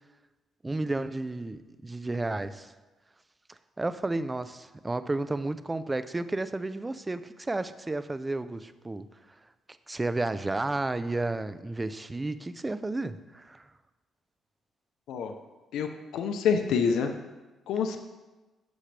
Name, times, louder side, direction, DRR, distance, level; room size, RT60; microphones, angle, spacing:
voice 1, 0.6-2.7 3.8-9.1 9.9-13.7, right 2 dB, 20° right, 12 dB, 0.5 m, -32 dB
voice 2, 15.7-17.1 17.7-18.0, left 6 dB, 80° left, 6 dB, 0.8 m, -27 dB
15.5 x 6.4 x 3.4 m, 1.2 s
cardioid pair, 90°, 0 cm